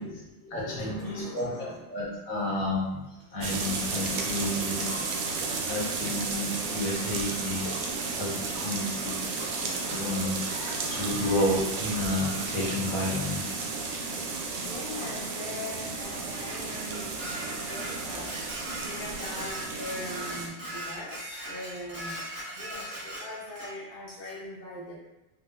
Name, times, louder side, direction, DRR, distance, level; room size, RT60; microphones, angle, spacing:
voice 1, 0.0-2.1 4.5-5.0 14.5-25.0, left 1 dB, 35° left, -7 dB, 1.2 m, -41 dB
voice 2, 0.5-5.2 5.7-13.5, left 1 dB, 60° left, -5 dB, 1.1 m, -31 dB
sound 1, 3.4-20.5, right 4 dB, 75° right, 0.7 m, -33 dB
Dishes pots and pans, 16.0-23.7, right 1 dB, 35° right, 0.4 m, -39 dB
3.8 x 2.7 x 2.4 m, 1.0 s
omnidirectional pair, 1.9 m